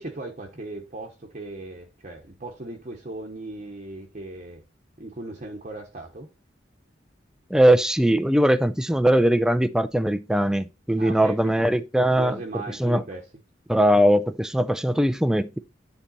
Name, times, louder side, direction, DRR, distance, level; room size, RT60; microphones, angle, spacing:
voice 1, 0.0-4.6 5.0-6.3 11.0-11.7 12.1-13.3, right 2 dB, 40° right, 1.0 m, -37 dB
voice 2, 7.5-12.4 12.8-13.0 13.7-15.6, right 1 dB, 5° right, 0.3 m, -20 dB
10.0 x 3.4 x 4.1 m
head